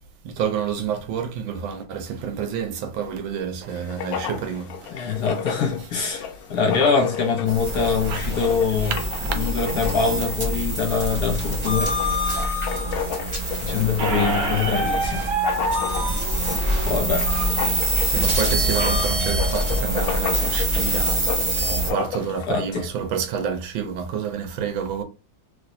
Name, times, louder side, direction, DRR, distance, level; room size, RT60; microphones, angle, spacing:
voice 1, 0.2-4.9 8.0-8.2 8.9-9.4 18.0-25.0, right 7 dB, 75° right, 1.3 m, -29 dB
Writing, 3.7-22.5, left 8 dB, 90° left, 0.8 m, -33 dB
voice 2, 4.9-8.9 9.4-12.7 13.6-15.3 16.9-17.3 22.5-22.8, left 5 dB, 65° left, 1.1 m, -24 dB
sound 1, 7.5-21.9, right 1 dB, 25° right, 1.0 m, -25 dB
Squeak, 14.0-19.0, right 3 dB, 50° right, 0.8 m, -28 dB
3.1 x 2.9 x 2.6 m
omnidirectional pair, 2.2 m